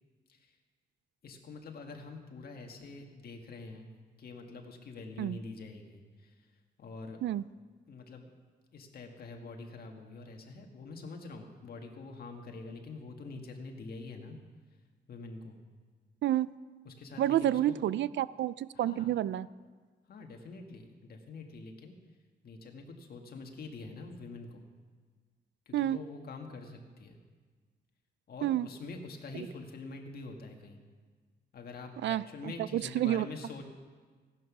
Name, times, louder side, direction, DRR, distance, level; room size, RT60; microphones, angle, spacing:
voice 1, 1.2-3.9 4.2-6.5 6.8-7.2 7.9-8.3 8.7-14.4 15.1-15.6 16.8-17.8 18.7-19.1 20.1-21.9 22.4-24.6 25.6-27.2 28.3-30.8 31.5-33.6, left 3 dB, 55° left, 3 dB, 1.7 m, -45 dB
voice 2, 17.2-19.5 25.7-26.0 28.4-28.7 32.0-33.3, right 12 dB, 85° right, 18 dB, 0.4 m, -29 dB
16.5 x 11.0 x 6.1 m, 1.5 s
wide cardioid pair, 170°, 18 cm